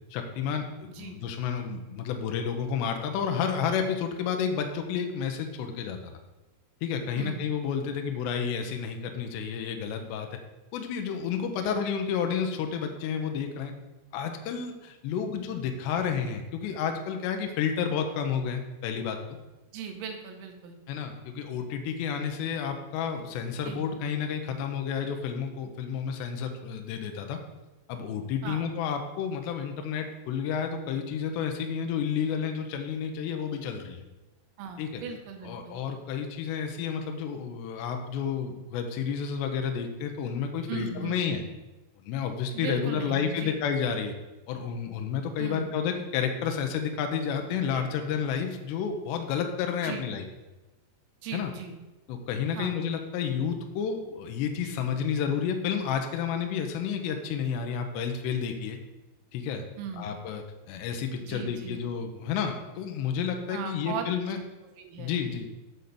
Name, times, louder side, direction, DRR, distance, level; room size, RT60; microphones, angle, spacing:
voice 1, 0.1-6.1 6.8-10.3 10.7-13.7 14.1-19.2 20.9-27.4 27.9-34.0 34.8-35.0 35.4-41.4 42.1-44.1 44.5-50.3 51.3-51.5 52.1-58.8 59.3-59.6 60.0-64.4 65.0-65.5, left 7 dB, 75° left, 4 dB, 2.6 m, -31 dB
voice 2, 19.7-20.8 23.6-23.8 28.4-28.7 34.6-35.8 40.7-41.3 42.5-43.6 45.4-45.8 49.8-50.0 51.2-51.8 52.5-52.8 59.8-60.1 61.2-61.9 63.5-64.1 64.8-65.2, right 6 dB, 80° right, 5 dB, 2.9 m, -38 dB
7.9 x 6.3 x 6.9 m, 1.1 s
omnidirectional pair, 5.9 m